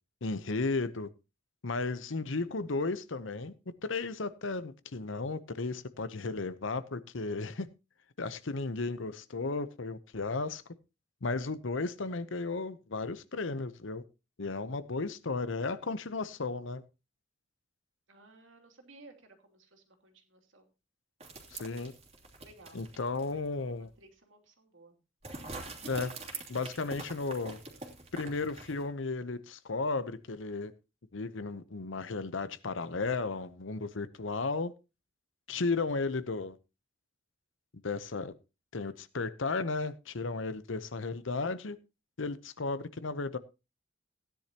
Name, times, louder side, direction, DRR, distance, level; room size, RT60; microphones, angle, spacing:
voice 1, 0.2-1.1 1.6-3.5 3.8-7.7 8.2-10.6 11.2-14.0 14.4-16.8 21.5-21.9 22.7-23.9 25.8-26.1 26.5-27.6 28.1-30.7 31.1-34.7 35.5-36.6 37.8-38.3 38.7-41.8 42.2-43.4, left 3 dB, 80° left, 0.8 m, -34 dB
voice 2, 18.1-20.7 22.4-25.0, right 2 dB, 80° right, 2.8 m, -58 dB
sound 1, 21.2-23.5 23.8-23.9 25.2-28.9, right 3 dB, 30° right, 2.7 m, -45 dB
16.0 x 10.0 x 2.9 m
head